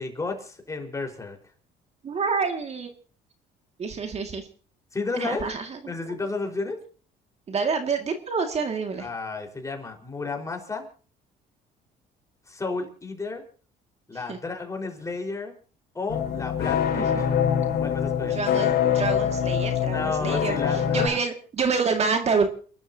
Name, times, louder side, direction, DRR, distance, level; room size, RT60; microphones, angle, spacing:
voice 1, 0.0-1.4 4.9-5.4 5.8-6.8 9.0-10.9 12.5-13.4 14.1-15.6 15.9-17.2 17.8-18.4 19.8-21.2, left 3 dB, 20° left, 3 dB, 4.7 m, -32 dB
voice 2, 2.0-2.9 3.8-4.5 5.2-5.8 7.5-9.1 14.1-14.4 16.9-17.1 18.3-22.5, right 5 dB, 40° right, 5 dB, 2.2 m, -27 dB
sound 1, 16.1-21.1, left 8 dB, 65° left, 5.5 m, -24 dB
30.0 x 12.0 x 2.8 m, 0.40 s
cardioid pair, 110°, 17 cm